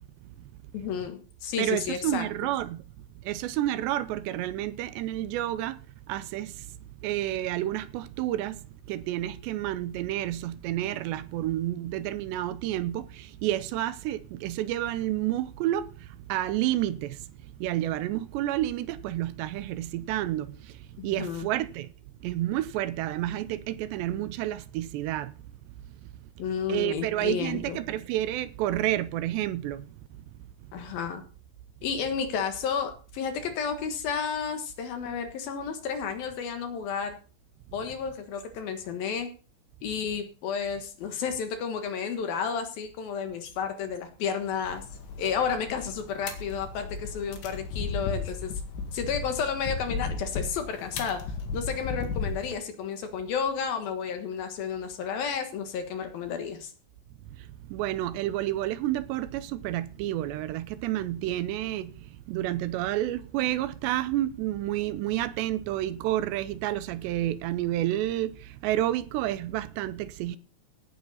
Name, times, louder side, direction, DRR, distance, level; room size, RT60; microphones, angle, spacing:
voice 1, 0.7-2.3 21.0-21.5 26.4-27.8 30.7-31.2 31.8-37.2 37.7-39.3 39.8-44.8 45.2-48.5 48.9-51.2 51.5-56.7, left 6 dB, 65° left, 2.8 m, -32 dB
voice 2, 1.6-2.8 3.2-5.8 6.1-6.8 7.0-17.3 17.6-21.9 22.2-25.3 26.7-29.9 57.4-70.4, right 14 dB, 80° right, 2.8 m, -30 dB
sound 1, 44.6-52.5, left 4 dB, 90° left, 4.4 m, -35 dB
17.5 x 9.5 x 4.1 m
omnidirectional pair, 5.2 m